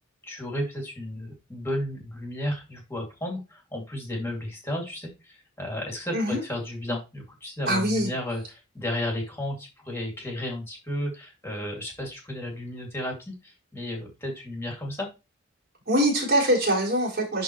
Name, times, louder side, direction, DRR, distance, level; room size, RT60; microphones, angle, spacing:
voice 1, 0.2-15.1, left 1 dB, 10° left, -1 dB, 2.3 m, -33 dB
voice 2, 7.7-8.1 15.9-17.4, right 1 dB, 45° right, -1 dB, 3.7 m, -23 dB
11.0 x 3.9 x 3.0 m, 0.26 s
head